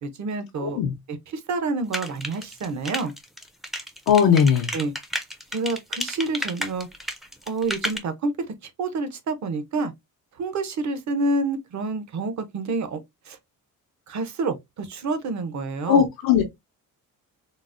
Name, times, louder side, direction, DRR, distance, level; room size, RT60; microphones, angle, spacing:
voice 1, 0.0-0.8 1.1-3.1 4.7-4.9 5.5-6.9 7.5-8.3 8.6-9.9 10.3-13.0 13.3-13.4 14.1-16.1, right 3 dB, 55° right, 0.7 m, -28 dB
voice 2, 0.6-0.9 4.1-4.7 15.9-16.4, left 7 dB, 85° left, 0.7 m, -18 dB
sound 1, 1.9-8.0, equal, ahead, 0.4 m, -31 dB
3.9 x 2.0 x 2.5 m
cardioid pair, 135°, 35 cm